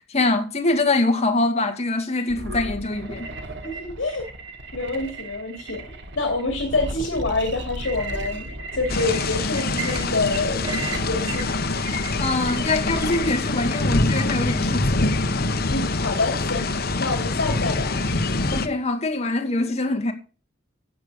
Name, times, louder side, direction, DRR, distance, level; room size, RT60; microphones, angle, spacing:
voice 1, 0.1-3.3 12.2-14.9 18.5-20.1, left 2 dB, 35° left, 1.8 m, -23 dB
sound 1, 2.3-13.3, right 2 dB, 60° right, 1.7 m, -34 dB
voice 2, 3.6-4.3 4.7-8.5 8.7-11.5 15.7-16.6 17.0-18.0, left 3 dB, 75° left, 2.6 m, -27 dB
sound 2, 8.9-18.7, left 2 dB, 50° left, 1.0 m, -25 dB
12.0 x 5.1 x 8.4 m
head